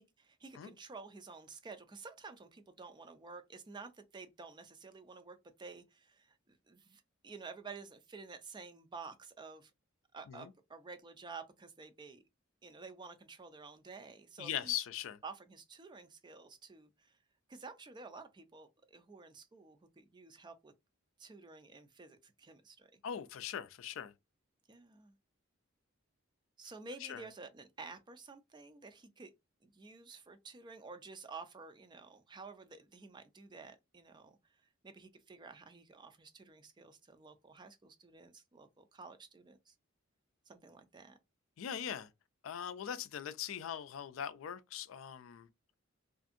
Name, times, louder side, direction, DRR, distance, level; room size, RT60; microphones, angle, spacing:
voice 1, 0.0-9.7 10.1-12.2 12.6-14.8 15.2-17.2 17.5-20.7 21.2-23.0 24.7-25.1 26.6-29.3 29.6-34.4 34.8-39.7 40.5-41.2, right 4 dB, 20° right, 0.4 m, -51 dB
voice 2, 14.4-15.2 23.0-24.1 27.0-27.2 41.6-42.1 42.4-45.5, left 9 dB, 70° left, 0.4 m, -40 dB
2.6 x 2.5 x 2.5 m
head